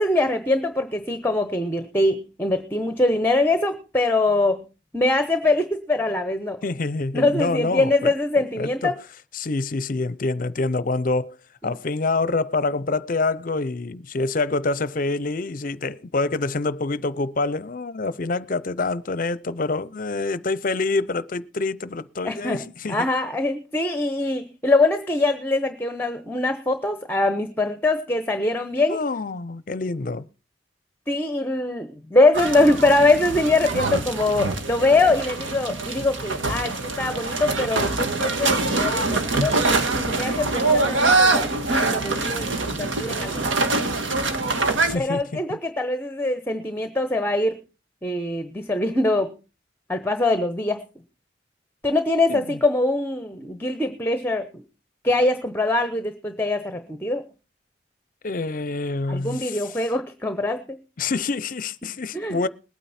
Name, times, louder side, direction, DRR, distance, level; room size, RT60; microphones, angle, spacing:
voice 1, 0.0-4.6 4.9-6.6 7.1-8.9 11.6-11.8 22.2-29.0 31.1-39.5 39.9-41.5 41.7-43.5 44.7-47.6 48.0-49.3 49.9-50.8 51.8-54.5 55.0-57.2 59.1-60.8 62.1-62.4, left 2 dB, 10° left, 0.8 m, -23 dB
voice 2, 6.6-8.1 8.6-9.0 9.3-11.4 11.6-23.1 28.9-30.3 44.8-45.6 52.3-52.6 58.2-59.9 61.0-62.5, left 3 dB, 45° left, 0.6 m, -26 dB
sound 1, 32.3-44.9, right 3 dB, 85° right, 1.6 m, -24 dB
20.0 x 9.1 x 4.2 m
head